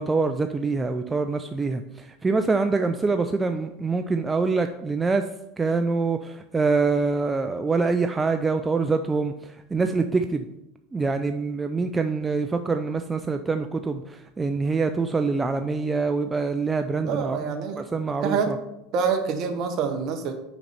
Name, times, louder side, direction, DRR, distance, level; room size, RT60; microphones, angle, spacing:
voice 1, 0.0-5.3 5.6-10.5 10.9-17.4 17.8-18.6, right 4 dB, 15° right, 7 dB, 0.4 m, -25 dB
voice 2, 17.0-17.8 18.2-18.5 18.9-20.3, right 6 dB, 50° right, 6 dB, 1.1 m, -26 dB
5.8 x 5.4 x 4.4 m, 0.86 s
supercardioid pair, 115°, 0 cm